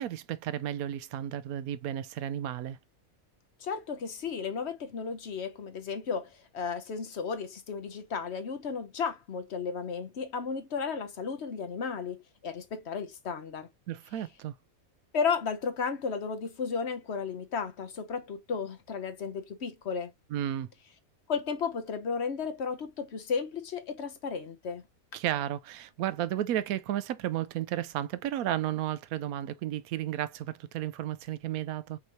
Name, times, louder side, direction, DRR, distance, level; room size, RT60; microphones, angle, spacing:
voice 1, 0.0-2.8 13.9-14.5 20.3-20.7 25.1-32.0, right 12 dB, 85° right, 1.1 m, -33 dB
voice 2, 3.6-13.7 15.1-20.1 21.3-24.8, left 5 dB, 55° left, 1.1 m, -34 dB
5.4 x 3.1 x 2.9 m
omnidirectional pair, 1.5 m